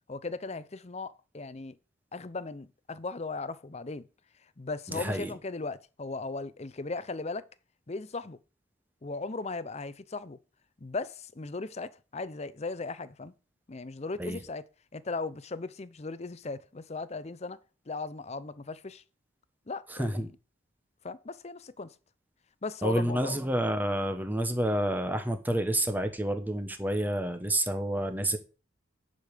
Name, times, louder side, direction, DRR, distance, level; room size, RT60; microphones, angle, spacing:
voice 1, 0.1-1.8 2.1-4.1 4.6-7.5 7.9-8.4 9.0-10.4 10.8-13.3 13.7-14.7 14.9-17.6 17.9-19.0 19.7-20.3 21.0-22.0 22.6-23.4, left 3 dB, 35° left, 0.6 m, -37 dB
voice 2, 4.9-5.3 14.2-14.4 19.9-20.3 22.8-28.4, right 1 dB, 10° right, 1.0 m, -29 dB
10.0 x 5.2 x 6.5 m
head